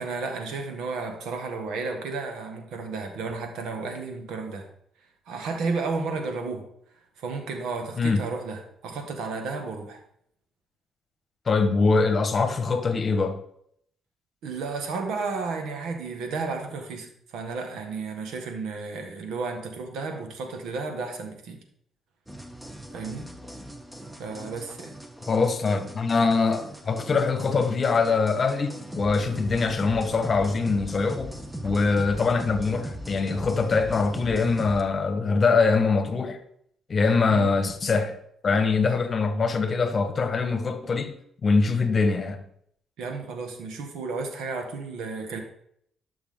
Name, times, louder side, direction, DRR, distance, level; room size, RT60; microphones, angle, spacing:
voice 1, 0.0-4.7 5.3-6.6 7.2-10.0 14.4-21.6 22.9-23.3 24.2-24.9 37.3-37.5 43.0-45.4, right 4 dB, 85° right, 1.7 m, -32 dB
voice 2, 11.5-13.4 25.3-31.3 31.6-36.4 36.9-38.2 38.4-41.1 41.4-42.4, left 4 dB, 40° left, 1.3 m, -23 dB
sound 1, 22.3-34.8, right 1 dB, 5° right, 1.1 m, -39 dB
12.0 x 6.1 x 3.8 m
cardioid pair, 90°, 0 cm